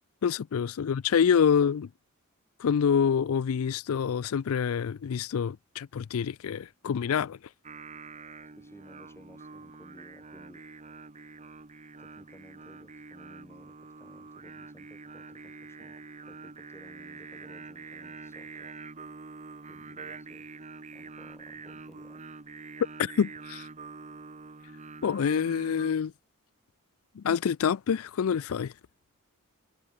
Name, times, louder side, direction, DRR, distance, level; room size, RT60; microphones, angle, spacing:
voice 1, 0.2-1.9 2.6-7.4 23.0-23.7 25.0-26.1 27.2-28.7, left 7 dB, 70° left, 0.4 m, -26 dB
Singing, 7.6-25.9, right 4 dB, 35° right, 1.1 m, -46 dB
voice 2, 8.6-10.6 12.0-16.0 16.3-18.7 19.7-20.5 20.9-22.2, equal, 10° left, 5.4 m, -55 dB
head